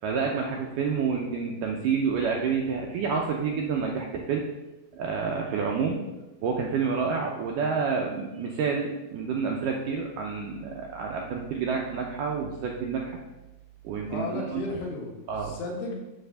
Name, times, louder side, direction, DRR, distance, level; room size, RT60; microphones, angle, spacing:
voice 1, 0.0-4.4 4.9-6.0 6.4-13.2 13.8-14.6 15.3-15.6, right 5 dB, 80° right, 0 dB, 1.9 m, -29 dB
voice 2, 14.1-16.0, left 2 dB, 85° left, -1 dB, 3.8 m, -34 dB
9.5 x 3.4 x 6.8 m, 1.0 s
omnidirectional pair, 4.6 m